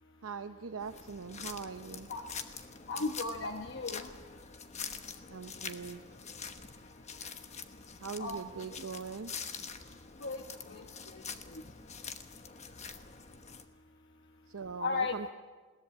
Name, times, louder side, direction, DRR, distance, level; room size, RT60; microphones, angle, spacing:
voice 1, 0.2-2.1 5.3-6.0 8.0-9.3 14.5-15.3, right 5 dB, 80° right, 6 dB, 0.7 m, -41 dB
sound 1, 0.8-13.6, left 6 dB, 30° left, 1.1 m, -45 dB
voice 2, 2.9-4.1 8.2-8.4 10.2-10.4 10.7-10.8 14.8-15.2, left 3 dB, 55° left, 5 dB, 1.0 m, -34 dB
21.0 x 18.0 x 7.6 m, 1.4 s
head